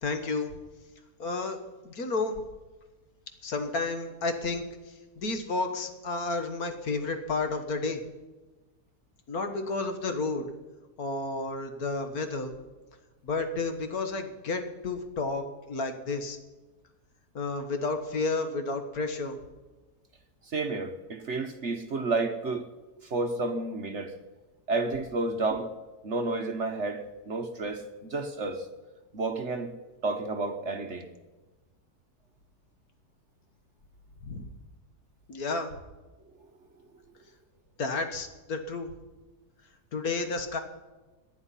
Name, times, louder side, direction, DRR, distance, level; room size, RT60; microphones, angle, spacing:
voice 1, 0.0-0.5 1.2-1.6 1.8-2.4 3.4-4.7 5.2-8.0 9.3-10.5 11.0-12.5 13.2-16.4 17.4-19.4 34.2-34.5 35.3-35.7 37.8-38.9 39.9-40.6, left 3 dB, 60° left, 7 dB, 1.8 m, -31 dB
voice 2, 20.5-22.7 23.0-24.1 24.7-25.7 26.0-28.7 29.1-29.7 30.0-31.1, right 3 dB, 50° right, 7 dB, 1.1 m, -31 dB
18.5 x 10.5 x 5.7 m, 1.2 s
omnidirectional pair, 1.8 m